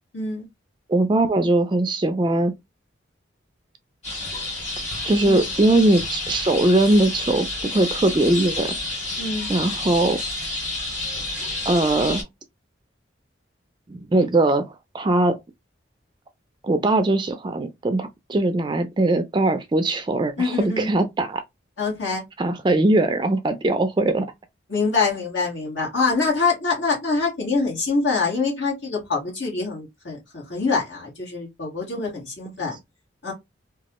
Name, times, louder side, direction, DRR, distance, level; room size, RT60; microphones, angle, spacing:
voice 1, 0.1-0.5 5.2-5.4 9.2-9.5 20.4-20.9 21.8-22.2 24.7-32.8 33.2-33.3, left 4 dB, 75° left, 1.6 m, -25 dB
voice 2, 0.9-2.5 5.0-8.7 9.5-10.2 11.7-12.2 13.9-15.4 16.6-21.4 22.4-24.3, right 2 dB, 25° right, 0.3 m, -20 dB
sound 1, 4.0-12.2, left 2 dB, 35° left, 1.9 m, -30 dB
3.0 x 2.3 x 2.9 m
head